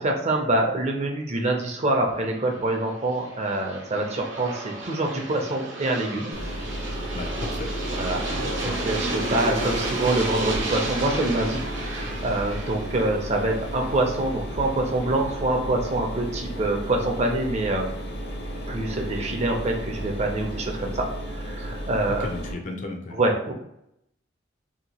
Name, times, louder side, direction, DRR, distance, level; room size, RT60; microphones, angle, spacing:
voice 1, 0.0-6.3 7.9-17.9 18.7-21.0 21.4-22.3 23.1-23.5, right 2 dB, 35° right, 1 dB, 0.5 m, -25 dB
Aircraft, 2.3-15.1, right 2 dB, 90° right, 0.6 m, -33 dB
Mechanisms, 6.3-22.5, equal, 65° left, 0.8 m, -34 dB
voice 2, 7.1-7.7 8.3-8.7 22.1-23.2, left 2 dB, 45° left, 3 dB, 0.4 m, -34 dB
2.8 x 2.6 x 2.8 m, 0.78 s
head